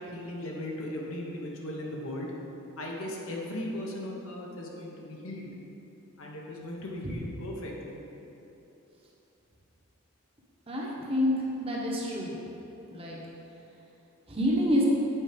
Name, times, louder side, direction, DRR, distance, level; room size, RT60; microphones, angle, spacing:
voice 1, 0.0-2.3 2.8-5.5 6.2-8.0, left 1 dB, 80° left, -2 dB, 1.1 m, -37 dB
voice 2, 10.7-11.3 11.6-12.4 12.9-13.2 14.3-14.8, left 1 dB, 25° right, -3 dB, 1.0 m, -27 dB
7.9 x 4.5 x 5.2 m, 3.0 s
head